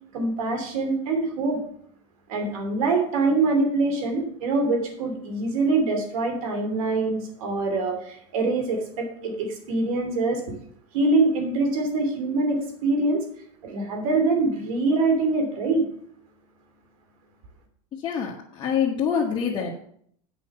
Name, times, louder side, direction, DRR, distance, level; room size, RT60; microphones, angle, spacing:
voice 1, 0.1-1.6 2.3-10.4 10.9-13.2 13.6-15.9, right 3 dB, 80° right, 5 dB, 2.8 m, -24 dB
voice 2, 17.9-19.7, left 7 dB, 25° left, -3 dB, 1.3 m, -26 dB
8.3 x 5.6 x 7.4 m, 0.65 s
supercardioid pair, 140°, 18 cm